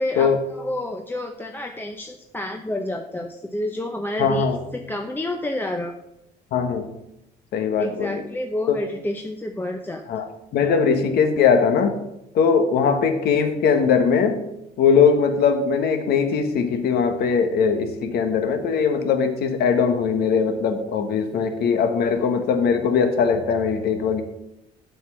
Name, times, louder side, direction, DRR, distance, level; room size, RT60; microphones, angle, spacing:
voice 1, 0.0-5.9 7.8-10.2, left 1 dB, 10° left, 4 dB, 0.7 m, -29 dB
voice 2, 4.2-4.6 6.5-6.9 7.5-8.2 8.7-8.8 10.1-10.3 10.5-12.0 12.3-14.4 14.8-24.2, left 6 dB, 70° left, 7 dB, 1.4 m, -20 dB
7.9 x 5.8 x 7.6 m, 0.85 s
cardioid pair, 110°, 17 cm